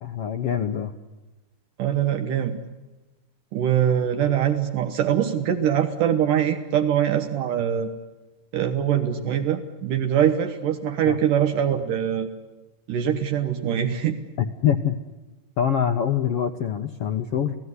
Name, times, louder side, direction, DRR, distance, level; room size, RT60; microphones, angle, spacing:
voice 1, 0.0-0.9 11.0-11.2 14.6-15.0 15.6-17.6, left 8 dB, 70° left, 6 dB, 1.5 m, -24 dB
voice 2, 1.8-2.6 3.5-7.9 8.5-12.3 12.9-14.2, right 9 dB, 75° right, 6 dB, 2.7 m, -23 dB
28.5 x 17.5 x 9.7 m, 1.1 s
omnidirectional pair, 3.8 m